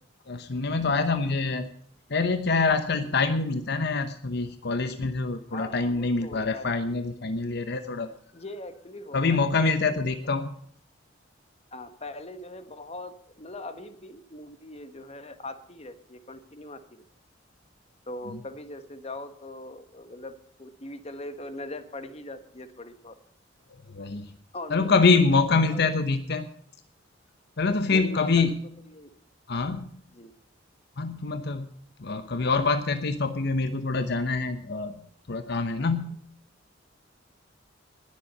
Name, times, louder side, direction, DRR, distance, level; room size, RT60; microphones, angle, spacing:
voice 1, 0.3-1.7 2.1-8.1 9.1-10.5 23.9-24.3 24.7-26.5 27.6-28.6 29.5-29.9 31.0-31.7 32.0-35.0 35.3-36.2, left 4 dB, 60° left, 9 dB, 0.9 m, -25 dB
voice 2, 5.5-6.9 8.3-10.1 11.7-16.8 18.1-20.3 20.6-23.1 24.5-25.8 27.9-28.5 28.9-29.1 30.1-30.3 35.8-35.9, left 2 dB, 35° left, 10 dB, 1.4 m, -41 dB
20.0 x 7.6 x 5.4 m, 0.64 s
head